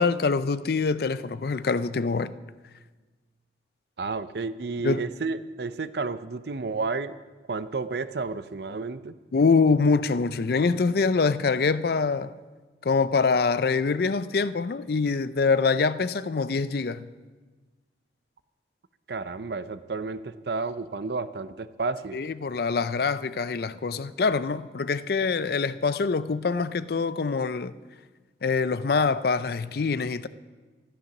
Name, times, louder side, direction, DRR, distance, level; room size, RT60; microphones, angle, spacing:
voice 1, 0.0-2.3 4.8-5.0 9.3-12.3 12.8-17.1 22.1-27.7 28.4-30.3, left 4 dB, 60° left, 0.5 m, -24 dB
voice 2, 4.0-7.2 7.5-9.2 19.1-22.2, right 4 dB, 65° right, 0.6 m, -31 dB
13.0 x 12.5 x 6.0 m
head